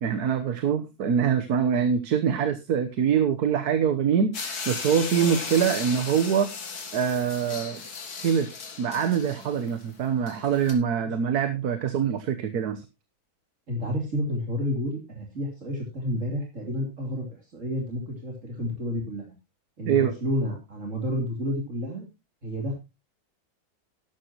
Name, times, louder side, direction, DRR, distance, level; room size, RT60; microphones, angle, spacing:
voice 1, 0.0-6.5 6.9-7.8 8.2-8.5 8.8-12.8 19.9-20.1, right 7 dB, 80° right, 10 dB, 1.5 m, -24 dB
sound 1, 4.3-10.7, left 5 dB, 75° left, 2.4 m, -36 dB
voice 2, 13.7-19.3 19.8-22.1 22.4-22.7, equal, 50° right, 0 dB, 3.5 m, -30 dB
12.5 x 11.5 x 3.0 m, 0.25 s
omnidirectional pair, 1.6 m